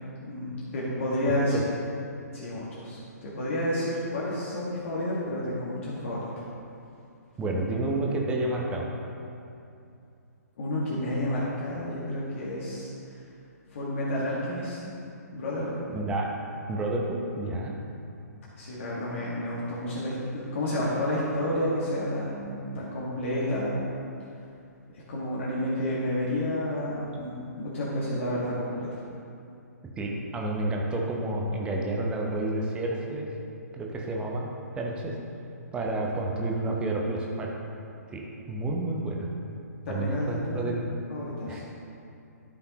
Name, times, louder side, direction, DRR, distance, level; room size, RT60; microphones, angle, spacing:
voice 1, 0.2-1.7 2.3-6.2 10.6-13.2 13.7-14.8 15.3-15.8 18.6-23.8 24.9-29.0 39.9-41.6, left 1 dB, 45° left, -7 dB, 1.7 m, -30 dB
voice 2, 7.4-8.9 15.9-16.3 16.7-17.7 30.0-33.3 33.7-34.5 34.7-35.1 35.7-37.5 38.1-38.2 38.5-39.3 39.9-40.8 41.5-41.6, right 2 dB, 10° right, -1 dB, 0.9 m, -30 dB
12.5 x 5.6 x 3.0 m, 2.6 s
figure-of-eight pair, 125°, 9 cm